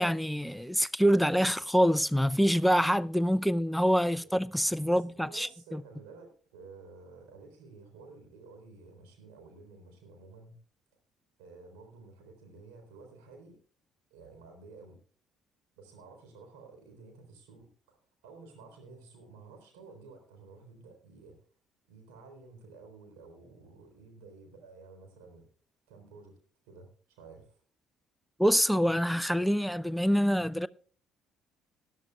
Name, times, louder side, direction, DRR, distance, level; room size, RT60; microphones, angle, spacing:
voice 1, 0.0-5.8 28.4-30.7, equal, ahead, 0.5 m, -26 dB
voice 2, 4.9-10.6 11.4-13.6 14.1-15.0 15.8-18.0 18.2-21.5 21.9-25.5 25.9-26.4 26.7-27.6, right 4 dB, 65° right, 3.8 m, -52 dB
19.0 x 11.0 x 2.3 m
figure-of-eight pair, 50°, 0 cm